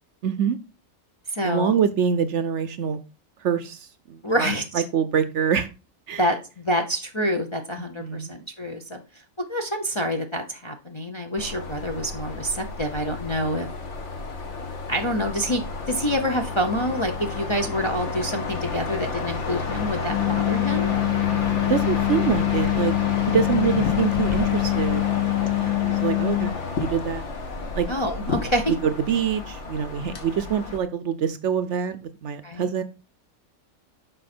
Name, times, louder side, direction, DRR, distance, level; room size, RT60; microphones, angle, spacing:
voice 1, 0.2-0.6 1.4-3.0 3.4-5.7 6.1-6.3 7.8-8.3 21.7-22.9 23.3-25.0 25.8-27.2 27.7-27.9 28.7-32.8, right 7 dB, 65° right, 0.9 m, -25 dB
voice 2, 1.3-1.7 4.2-4.8 6.2-9.0 9.5-13.7 14.9-20.9 25.5-25.9 27.9-28.7 32.4-32.7, equal, 30° left, 0.6 m, -27 dB
sound 1, 11.4-30.8, left 4 dB, 55° left, 1.6 m, -31 dB
sound 2, 20.1-26.5, left 26 dB, 75° left, 1.2 m, -24 dB
7.7 x 5.2 x 4.3 m
omnidirectional pair, 1.5 m